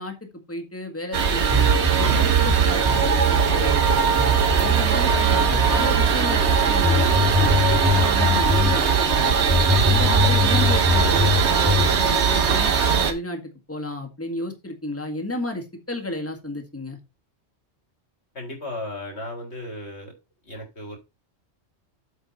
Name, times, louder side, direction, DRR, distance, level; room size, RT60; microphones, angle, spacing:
voice 1, 0.0-4.0 4.5-9.4 9.8-13.4 13.7-17.0, left 1 dB, 10° left, 4 dB, 1.8 m, -32 dB
sound 1, 1.1-13.1, right 6 dB, 80° right, 1.4 m, -20 dB
sound 2, 1.5-8.8 9.5-12.0, equal, 5° right, 1.0 m, -22 dB
voice 2, 18.3-20.1 20.4-21.0, left 1 dB, 75° left, 2 dB, 3.6 m, -35 dB
8.3 x 6.0 x 4.2 m, 0.24 s
omnidirectional pair, 1.1 m